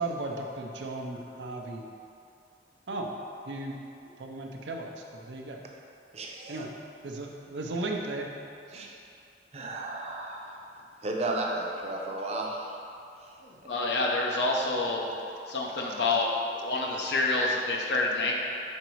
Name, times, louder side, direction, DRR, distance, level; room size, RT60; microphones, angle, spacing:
voice 1, 0.0-1.8 2.9-3.1 3.5-3.8 4.2-5.6 6.5-6.7 7.0-8.3 8.7-8.9, right 2 dB, 90° right, 1 dB, 0.7 m, -35 dB
voice 2, 6.1-6.7 8.7-8.9 9.5-10.5 11.0-12.7, right 2 dB, 35° right, -1 dB, 0.6 m, -33 dB
voice 3, 13.4-15.0 15.5-18.4, left 2 dB, 75° left, -1 dB, 0.8 m, -28 dB
5.3 x 3.9 x 4.6 m, 2.6 s
head